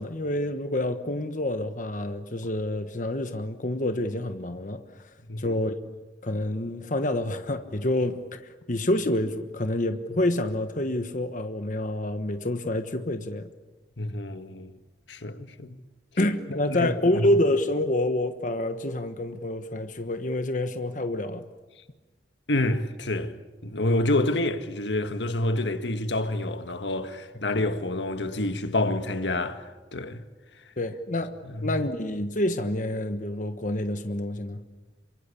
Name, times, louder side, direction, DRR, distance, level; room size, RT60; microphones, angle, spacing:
voice 1, 0.0-4.8 5.4-5.7 6.2-13.5 16.2-21.4 30.8-31.3 31.6-34.6, left 1 dB, 45° left, 1.3 m, -27 dB
voice 2, 14.0-14.7 15.1-15.8 16.5-17.3 22.5-23.4 23.6-30.2 31.4-31.7, left 2 dB, 80° left, 1.7 m, -28 dB
27.0 x 24.5 x 8.5 m
head